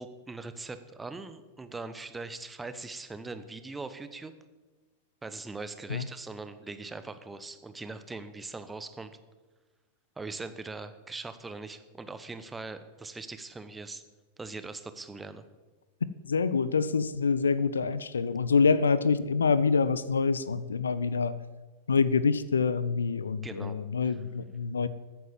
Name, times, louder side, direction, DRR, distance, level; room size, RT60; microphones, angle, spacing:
voice 1, 0.0-4.3 5.2-9.1 10.2-14.0 14.4-15.4 23.4-23.8 24.0-24.2, right 3 dB, 10° right, 11 dB, 1.0 m, -41 dB
voice 2, 16.2-21.4 21.9-24.9, left 5 dB, 70° left, 17 dB, 0.6 m, -26 dB
14.5 x 9.2 x 7.4 m, 1.2 s
figure-of-eight pair, 90°, 0 cm